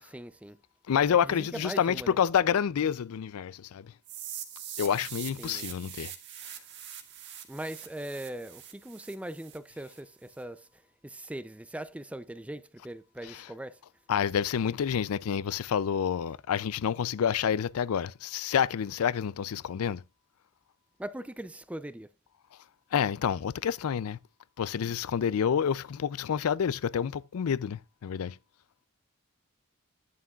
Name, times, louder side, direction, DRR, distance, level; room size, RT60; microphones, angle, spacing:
voice 1, 0.0-0.6 1.2-2.2 5.4-5.7 7.5-10.7 11.0-13.8 21.0-22.1, right 1 dB, 5° right, 0.4 m, -40 dB
voice 2, 0.9-3.9 4.8-6.1 13.2-13.5 14.1-20.0 22.9-24.2 24.6-28.4, left 8 dB, 80° left, 0.4 m, -28 dB
sound 1, 4.1-10.0, right 10 dB, 55° right, 1.7 m, -43 dB
11.0 x 11.0 x 2.4 m
head